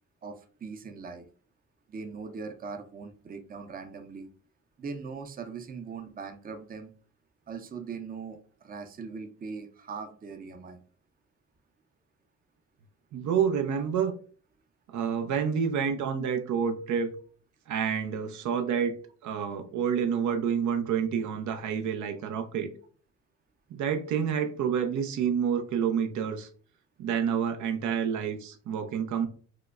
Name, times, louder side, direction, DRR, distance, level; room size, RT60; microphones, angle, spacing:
voice 1, 0.2-1.3 1.9-4.3 4.8-6.9 7.5-10.8, right 5 dB, 30° right, 7 dB, 0.5 m, -40 dB
voice 2, 13.1-14.1 14.9-17.1 17.7-18.9 19.2-22.7 23.7-26.5 27.0-29.3, right 7 dB, 75° right, 6 dB, 0.6 m, -28 dB
4.8 x 2.1 x 2.3 m, 0.42 s
cardioid pair, 90°, 30 cm